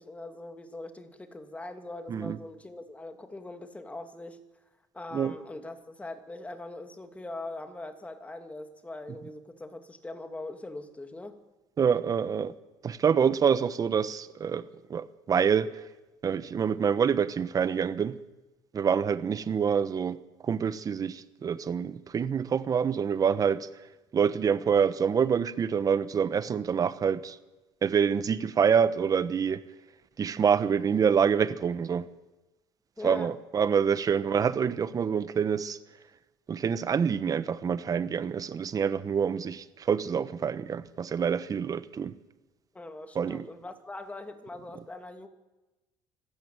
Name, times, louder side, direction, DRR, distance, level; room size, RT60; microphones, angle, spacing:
voice 1, 0.0-4.4 4.9-11.4 33.0-33.3 42.7-45.3, left 2 dB, 15° left, 2.6 m, -41 dB
voice 2, 2.1-2.4 5.1-5.3 11.8-12.5 12.8-15.7 16.2-18.2 18.7-23.7 24.1-27.4 27.8-29.6 30.2-32.0 33.0-35.8 36.5-42.1 43.1-43.4, right 7 dB, 40° right, 1.2 m, -26 dB
25.0 x 13.0 x 9.1 m
cardioid pair, 100°, 10 cm